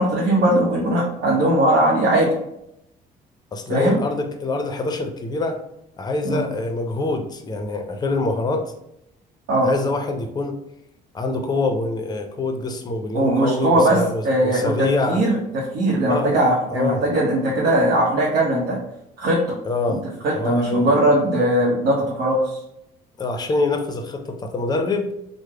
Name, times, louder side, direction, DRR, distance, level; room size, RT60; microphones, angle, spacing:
voice 1, 0.0-2.3 3.7-4.0 6.2-6.5 9.5-9.7 13.1-14.0 14.2-15.4 15.7-18.8 19.2-19.6 19.9-20.0 20.2-22.6, right 1 dB, 75° right, -5 dB, 0.8 m, -19 dB
voice 2, 3.5-5.6 6.0-8.7 9.6-10.6 11.1-15.2 16.1-16.4 16.7-17.1 19.6-20.0 20.3-20.9 23.2-25.1, left 3 dB, 25° left, 5 dB, 0.5 m, -25 dB
3.3 x 2.0 x 3.4 m, 0.80 s
cardioid pair, 110°, 17 cm